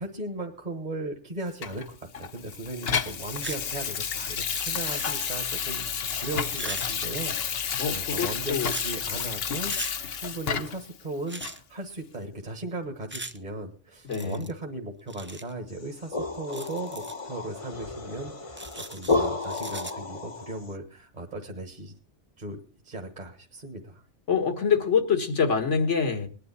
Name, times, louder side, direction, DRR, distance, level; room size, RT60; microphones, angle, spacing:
voice 1, 0.0-9.7 10.1-22.0 22.4-24.0, right 2 dB, 40° right, 1.6 m, -37 dB
Water tap faucet / Sink (filling or washing), 1.6-10.9 11.4-11.6, left 7 dB, 60° left, 1.0 m, -31 dB
sound 1, 3.3-3.6 3.9-5.4 6.2-7.5 8.6-8.9 9.7-9.9 11.3-11.6 13.1-13.4 14.1-14.5 15.1-15.5 16.4-17.2 18.6-19.9, right 2 dB, 15° right, 0.5 m, -39 dB
voice 2, 7.8-8.7 14.0-14.5 24.3-26.3, left 6 dB, 80° left, 1.9 m, -25 dB
sound 2, 15.7-20.7, left 3 dB, 30° left, 1.0 m, -32 dB
20.0 x 10.5 x 4.2 m
omnidirectional pair, 1.2 m